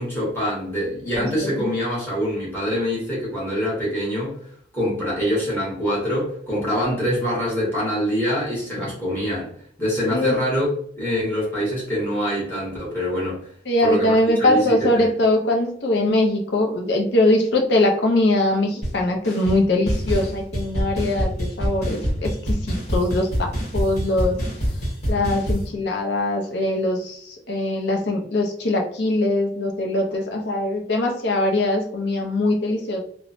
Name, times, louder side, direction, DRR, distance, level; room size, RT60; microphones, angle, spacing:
voice 1, 0.0-4.3 4.7-9.5 9.8-10.7 11.0-13.4 13.8-15.1, equal, 10° left, -7 dB, 1.3 m, -25 dB
voice 2, 13.7-24.4 25.1-33.0, left 1 dB, 65° left, 2 dB, 0.6 m, -22 dB
sound 1, 18.8-19.0 19.2-19.6 19.9-25.7, equal, 40° left, 1.5 m, -26 dB
3.1 x 2.1 x 2.5 m, 0.62 s
head